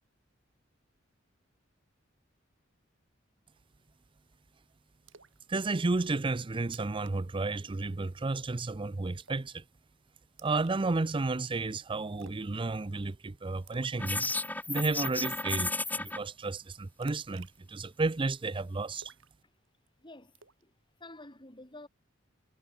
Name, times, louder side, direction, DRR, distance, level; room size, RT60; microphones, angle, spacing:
Splash splatter, 5.1-5.4 5.8-5.9 6.3-6.4 6.6-7.1 7.4-7.6 7.9-8.3 9.2-9.6 10.4-11.3 12.2-12.5 12.7-13.1 13.7-14.0 14.4-14.5 15.0-15.3 17.0-18.3 18.9-19.9 20.3-20.6, right 4 dB, 75° right, 7.1 m, -54 dB
voice 1, 5.5-9.6 10.4-14.3 14.7-19.1, right 3 dB, 25° right, 0.5 m, -32 dB
sound 1, 14.0-16.2, left 2 dB, 10° left, 1.6 m, -33 dB
voice 2, 20.0-20.7 21.0-21.9, left 2 dB, 25° left, 5.8 m, -50 dB
head